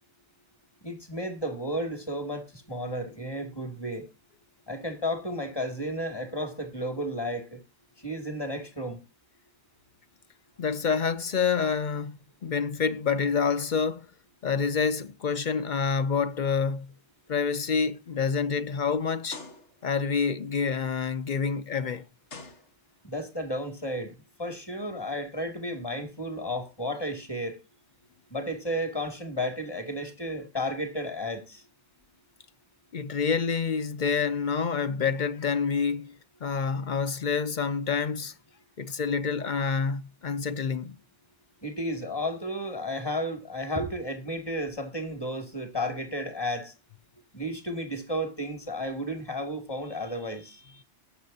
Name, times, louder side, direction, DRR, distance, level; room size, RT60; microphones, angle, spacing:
voice 1, 0.8-4.1 4.7-7.6 8.0-9.0 23.0-24.1 24.4-27.6 28.3-31.6 41.6-46.7 47.3-50.8, equal, 20° left, 2.4 m, -33 dB
voice 2, 10.6-14.1 14.4-16.9 17.3-19.4 19.8-22.0 32.9-36.1 36.4-38.3 38.8-40.9, left 5 dB, 50° left, 0.7 m, -27 dB
sound 1, 16.1-16.4 16.9-17.1 17.8-17.9 19.3-20.0 21.5-21.6 22.3-23.2, left 3 dB, 80° left, 1.8 m, -46 dB
19.5 x 6.9 x 2.7 m
omnidirectional pair, 1.2 m